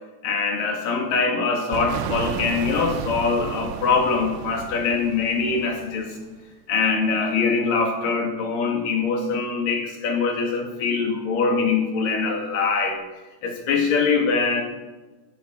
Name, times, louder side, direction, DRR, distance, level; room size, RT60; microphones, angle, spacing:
voice 1, 0.2-6.2 6.7-13.0 13.4-14.6, left 4 dB, 80° left, 2 dB, 3.8 m, -23 dB
sound 1, 1.7-6.4, right 10 dB, 85° right, 2.3 m, -33 dB
14.0 x 10.5 x 6.0 m, 1.2 s
omnidirectional pair, 3.9 m